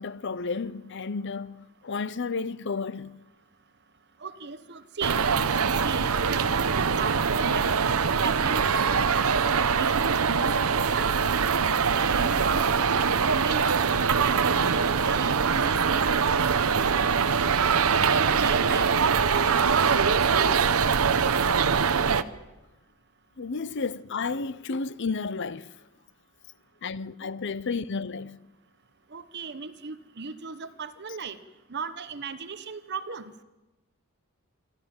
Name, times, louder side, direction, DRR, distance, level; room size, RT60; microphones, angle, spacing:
voice 1, 0.0-3.2 23.4-25.8 26.8-28.4, left 4 dB, 55° left, 0.7 m, -32 dB
voice 2, 4.2-5.2 5.8-7.6 8.2-11.1 11.9-17.3 17.8-18.9 19.3-20.6 29.1-31.4 31.7-33.3, right 5 dB, 50° right, 0.9 m, -36 dB
sound 1, 5.0-22.2, right 6 dB, 75° right, 0.8 m, -23 dB
26.5 x 13.5 x 8.9 m
head